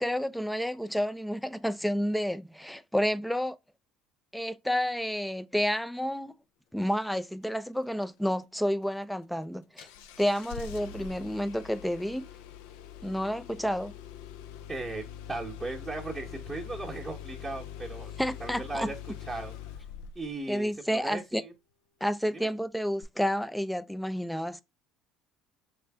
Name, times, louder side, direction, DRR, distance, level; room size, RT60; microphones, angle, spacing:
voice 1, 0.0-3.6 4.3-6.3 6.7-9.9 10.2-12.3 13.0-13.9 18.2-18.9 20.5-21.4 22.0-24.6, equal, ahead, 0.3 m, -30 dB
Engine starting, 9.8-20.4 23.0-23.1, left 9 dB, 80° left, 0.3 m, -44 dB
voice 2, 14.7-18.1 18.4-19.0 19.2-19.5 20.1-21.5 22.3-22.5, right 2 dB, 15° right, 0.9 m, -37 dB
3.3 x 2.5 x 3.4 m
supercardioid pair, 85°, 0 cm